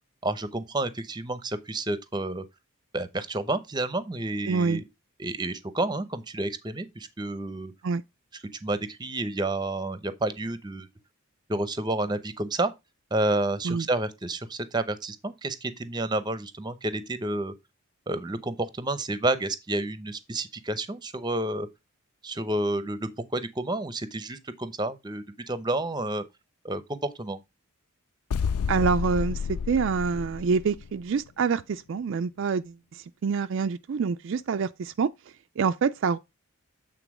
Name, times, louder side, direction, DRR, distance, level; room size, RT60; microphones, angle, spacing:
voice 1, 0.2-2.4 2.9-4.8 5.2-7.7 8.6-10.9 11.5-12.7 13.1-17.5 18.1-21.7 22.2-26.2 26.6-27.4, right 2 dB, 20° right, 0.7 m, -30 dB
voice 2, 4.5-4.8 7.8-8.0 13.6-13.9 28.7-35.1 35.6-36.2, right 5 dB, 55° right, 0.3 m, -26 dB
sound 1, 28.3-31.0, left 6 dB, 80° left, 0.4 m, -30 dB
8.3 x 3.9 x 4.8 m
head